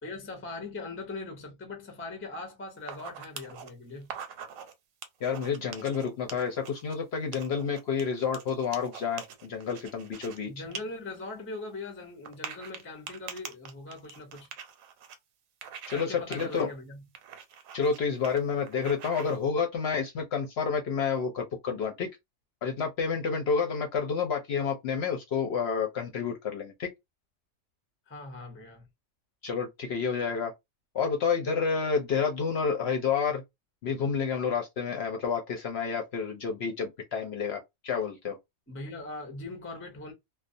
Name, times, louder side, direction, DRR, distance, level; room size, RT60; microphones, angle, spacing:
voice 1, 0.0-4.1 10.5-14.5 15.9-17.1 28.1-28.9 38.7-40.1, left 2 dB, 20° left, 0.4 m, -41 dB
sound 1, 2.8-3.7 4.0-4.7 5.0-6.9 7.3-10.4 10.7-10.8 11.2-11.3 12.3-15.2 15.6-16.1 16.3-16.6 17.2-18.0 18.2-18.4 18.7-19.4, right 7 dB, 90° right, 1.0 m, -43 dB
voice 2, 5.2-10.5 15.9-16.7 17.7-22.1 22.6-26.9 29.4-30.5 30.9-33.4 33.8-38.4, left 6 dB, 65° left, 0.7 m, -29 dB
2.3 x 2.0 x 2.6 m
omnidirectional pair, 1.4 m